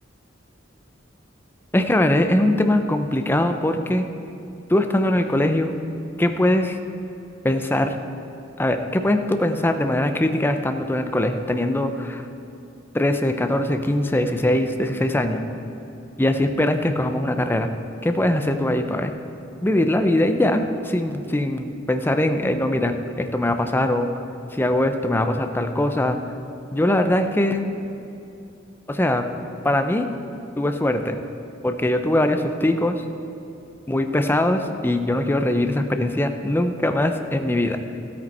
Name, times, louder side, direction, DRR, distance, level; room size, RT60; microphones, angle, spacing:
voice 1, 1.7-4.1 4.7-5.7 6.2-6.8 7.4-7.9 8.6-12.2 12.9-15.4 16.2-17.7 18.0-19.1 19.6-24.1 24.5-26.2 26.7-27.7 28.9-29.3 29.6-30.1 30.6-31.2 31.6-33.0 33.9-37.8, left 1 dB, 10° left, 6 dB, 0.5 m, -21 dB
13.0 x 8.8 x 4.2 m, 2.7 s
head